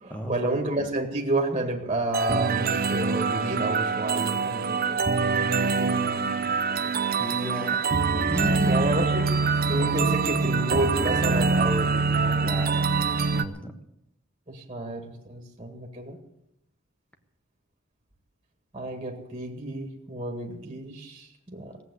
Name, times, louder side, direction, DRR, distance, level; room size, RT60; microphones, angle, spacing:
voice 1, 0.0-5.0 8.7-9.3 9.6-12.5 14.5-16.2 18.7-21.8, right 1 dB, 25° right, 2 dB, 1.9 m, -30 dB
sound 1, 2.1-13.4, right 4 dB, 40° right, 0.7 m, -24 dB
voice 2, 5.4-6.3 7.2-8.8 9.2-9.4 9.8-10.1 12.4-13.7, right 1 dB, 5° left, 6 dB, 1.4 m, -35 dB
17.5 x 8.2 x 9.8 m, 0.81 s
head